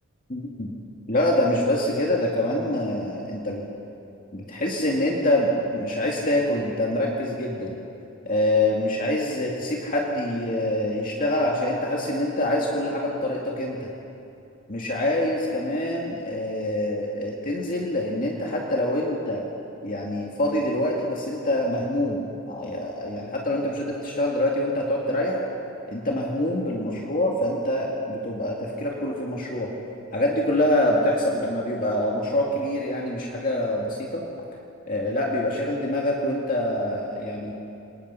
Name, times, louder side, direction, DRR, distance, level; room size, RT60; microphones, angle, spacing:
voice 1, 0.3-0.7 1.1-3.6 4.3-7.8 8.3-13.9 14.7-19.4 19.8-25.4 25.9-29.7 30.1-34.3 34.9-37.5, left 1 dB, 40° left, -2 dB, 2.2 m, -25 dB
27.0 x 20.5 x 5.7 m, 2.8 s
head